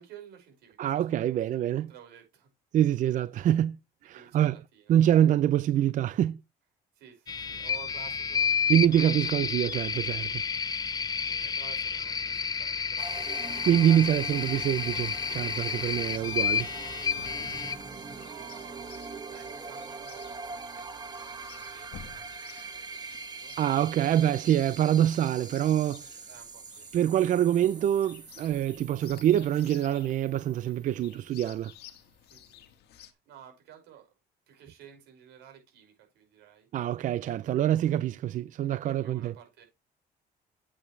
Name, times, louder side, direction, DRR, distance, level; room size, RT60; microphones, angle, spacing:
voice 1, 0.0-2.5 4.1-4.9 6.9-8.7 11.2-14.1 14.5-14.7 15.4-15.9 17.3-19.0 19.3-23.7 26.3-26.9 27.5-27.6 32.3-32.6 33.1-34.1 34.5-36.7 38.8-39.6, right 9 dB, 85° right, 5.6 m, -53 dB
voice 2, 0.8-1.9 2.7-4.6 4.9-6.4 8.7-10.4 13.6-16.7 23.6-26.1 26.9-31.7 36.7-39.3, right 11 dB, 50° right, 0.4 m, -25 dB
sound 1, 7.3-17.8, left 6 dB, 25° left, 0.4 m, -31 dB
sound 2, 13.0-31.4, right 4 dB, 25° right, 1.5 m, -43 dB
Chirp tweet, 14.2-33.1, left 9 dB, 75° left, 1.5 m, -53 dB
8.7 x 8.5 x 3.2 m
cardioid pair, 110°, 17 cm